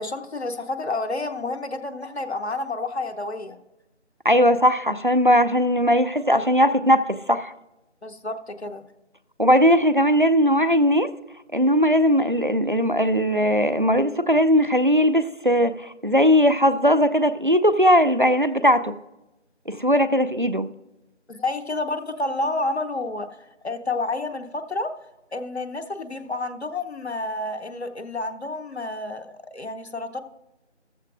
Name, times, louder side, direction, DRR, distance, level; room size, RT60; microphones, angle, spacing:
voice 1, 0.0-3.6 8.0-8.8 21.3-23.3 23.6-24.9 25.3-30.2, left 2 dB, 65° left, 0.9 m, -29 dB
voice 2, 4.2-7.5 9.4-11.1 11.5-19.0 19.7-20.7, equal, 45° right, 0.4 m, -19 dB
14.5 x 14.0 x 2.5 m
figure-of-eight pair, 175°, 36 cm